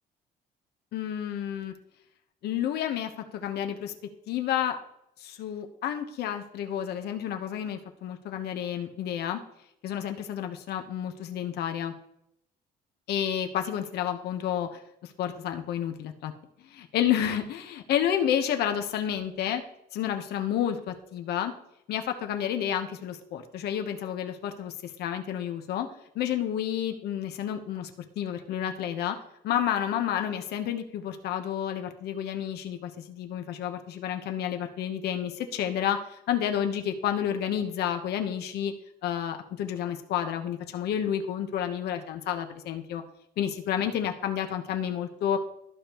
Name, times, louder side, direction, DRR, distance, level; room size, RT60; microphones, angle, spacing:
voice 1, 0.9-1.7 2.4-3.9 4.3-4.8 5.2-9.4 9.8-11.9 13.1-16.3 16.9-19.6 19.9-21.5 21.9-25.9 26.1-27.9 28.2-29.2 29.4-38.7 39.0-43.0 43.4-45.4, left 9 dB, 75° left, 6 dB, 1.0 m, -30 dB
14.0 x 5.1 x 3.1 m, 0.79 s
cardioid pair, 110°, 17 cm